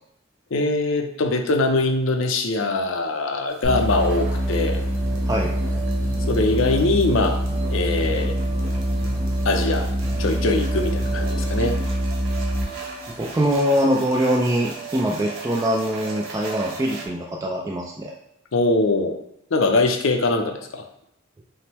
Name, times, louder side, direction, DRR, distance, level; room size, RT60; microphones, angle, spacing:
voice 1, 0.5-4.8 6.3-7.4 7.7-8.4 9.4-9.9 10.2-11.8 18.5-19.2 19.5-20.8, left 2 dB, 75° left, 4 dB, 0.6 m, -22 dB
sound 1, 3.5-17.1, right 4 dB, 90° right, 0.9 m, -37 dB
sound 2, 3.6-12.8, right 1 dB, 50° right, 1.6 m, -24 dB
voice 2, 13.1-18.1, equal, 15° right, -1 dB, 0.3 m, -23 dB
5.6 x 2.1 x 3.4 m, 0.80 s
head